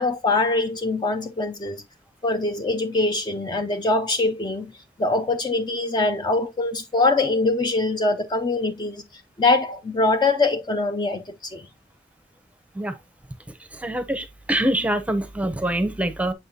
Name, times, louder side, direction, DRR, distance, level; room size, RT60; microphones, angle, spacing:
voice 1, 0.0-1.8 2.2-4.7 5.0-11.7, left 3 dB, 25° left, 0.4 m, -23 dB
voice 2, 13.8-16.3, right 1 dB, 10° right, 0.7 m, -24 dB
6.7 x 5.4 x 2.7 m
head